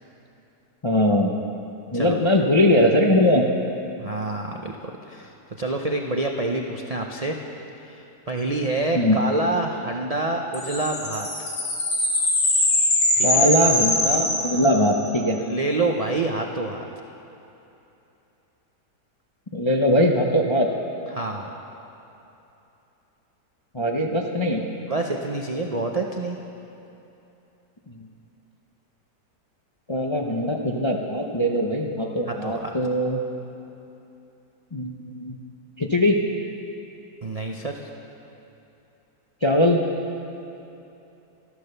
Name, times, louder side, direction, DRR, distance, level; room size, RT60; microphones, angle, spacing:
voice 1, 0.8-1.3 1.9-3.5 8.9-9.2 13.2-15.4 19.5-20.7 23.7-24.6 29.9-33.2 34.7-35.4 35.8-36.2 39.4-39.8, left 1 dB, 35° left, 0 dB, 0.4 m, -21 dB
voice 2, 4.0-7.4 7.8-11.5 13.2-13.5 15.4-16.8 21.1-21.5 24.9-26.4 32.3-32.7 37.2-37.9, right 2 dB, 55° right, 2 dB, 0.4 m, -27 dB
sound 1, 10.5-15.2, left 1 dB, 90° left, 3.0 m, -22 dB
13.5 x 12.5 x 6.8 m, 2.9 s
omnidirectional pair, 1.8 m